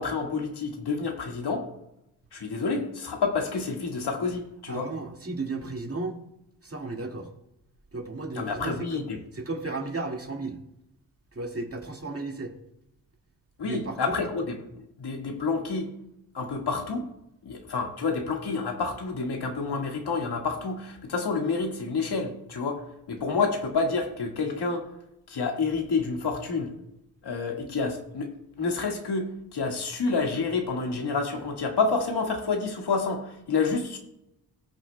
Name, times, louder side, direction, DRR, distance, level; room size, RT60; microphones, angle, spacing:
voice 1, 0.0-1.6 2.3-4.9 8.4-9.2 13.6-14.6 15.0-15.9 16.3-17.1 17.4-24.9 25.3-26.7 27.2-28.3 28.6-34.0, left 4 dB, 65° left, 2 dB, 1.7 m, -29 dB
voice 2, 4.7-6.2 6.6-7.3 7.9-9.1 9.3-10.6 11.3-12.5 13.6-14.2, right 3 dB, 35° right, 2 dB, 1.9 m, -34 dB
19.0 x 6.3 x 2.2 m, 0.82 s
cardioid pair, 55°, 42 cm